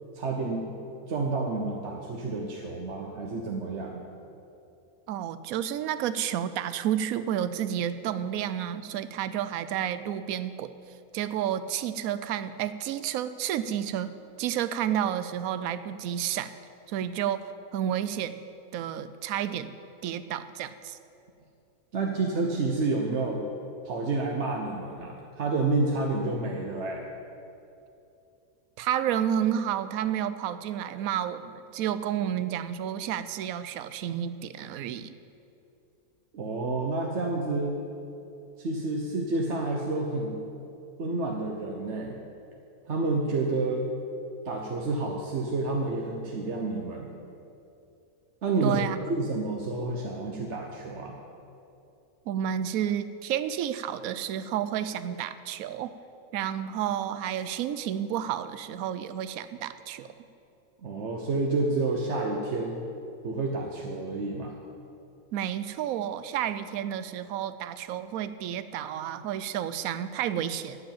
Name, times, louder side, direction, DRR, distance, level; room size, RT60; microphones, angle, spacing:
voice 1, 0.1-0.7 1.1-4.0 21.9-23.4 23.8-27.1 36.3-37.8 38.6-40.4 41.0-42.1 42.9-43.9 44.5-47.1 48.4-51.2 60.8-62.8 63.2-64.5, right 3 dB, 55° right, 0 dB, 1.1 m, -29 dB
voice 2, 5.1-10.7 11.1-14.1 14.4-16.5 16.9-18.4 18.7-19.8 20.0-21.0 28.8-35.1 48.6-49.0 52.3-55.9 56.3-60.1 65.3-70.8, right 10 dB, 75° right, 13 dB, 1.0 m, -31 dB
14.5 x 5.2 x 8.8 m, 2.7 s
omnidirectional pair, 1.6 m